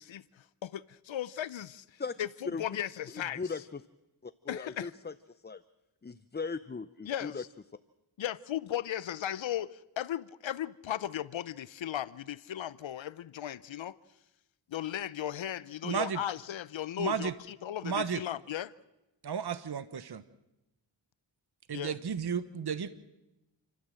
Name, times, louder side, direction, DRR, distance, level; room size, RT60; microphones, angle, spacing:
voice 1, 0.0-3.4 4.5-4.9 7.1-7.5 8.2-14.0 14.7-18.7 21.7-22.0, left 11 dB, 80° left, 0.7 m, -36 dB
voice 2, 3.4-3.8 4.2-5.1 5.4-5.6 6.0-7.4, left 4 dB, 20° left, 0.6 m, -38 dB
voice 3, 15.8-16.2 17.0-17.3 17.8-18.2 19.2-20.2 21.7-22.9, right 7 dB, 55° right, 1.2 m, -33 dB
29.5 x 13.0 x 7.7 m
cardioid pair, 60°, 46 cm